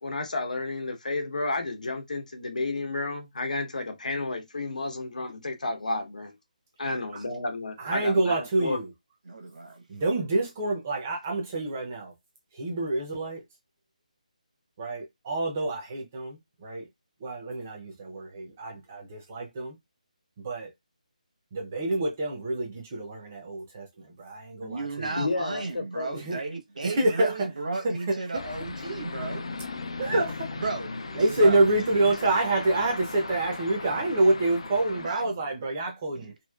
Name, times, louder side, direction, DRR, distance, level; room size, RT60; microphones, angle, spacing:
voice 1, 0.0-6.4 6.8-8.8 25.2-26.2, left 2 dB, 75° left, 1.0 m, -31 dB
voice 2, 7.8-8.9 9.9-12.1 12.5-13.4 14.8-16.9 17.2-19.8 20.4-20.7 21.5-25.2 26.1-26.4 26.8-27.5 27.8-28.4 30.0-30.5 31.2-36.3, right 2 dB, 15° right, 0.5 m, -27 dB
voice 3, 9.3-9.9 24.6-29.4 30.6-31.7 34.9-35.4 36.2-36.3, right 3 dB, 70° right, 1.0 m, -35 dB
sound 1, 28.3-35.1, left 3 dB, 45° left, 0.4 m, -37 dB
3.0 x 2.6 x 2.3 m
hypercardioid pair, 180°, 4 cm